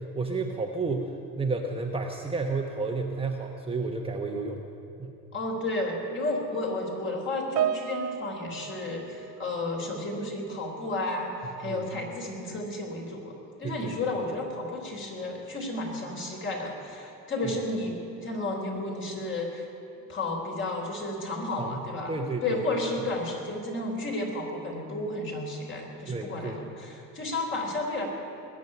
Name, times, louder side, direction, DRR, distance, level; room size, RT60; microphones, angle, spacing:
voice 1, 0.1-4.7 5.0-5.1 11.6-11.9 13.6-13.9 21.5-21.8 22.1-22.6 26.1-26.6, right 3 dB, 15° right, 1 dB, 1.0 m, -31 dB
voice 2, 5.3-11.3 11.6-13.3 13.6-17.9 18.2-19.7 20.1-22.1 22.4-28.1, left 2 dB, 35° left, 0 dB, 3.7 m, -32 dB
Piano, 7.6-10.2 10.5-10.8 11.6-11.7, right 9 dB, 45° right, 0.6 m, -33 dB
20.0 x 7.3 x 9.6 m, 2.7 s
cardioid pair, 115°, 36 cm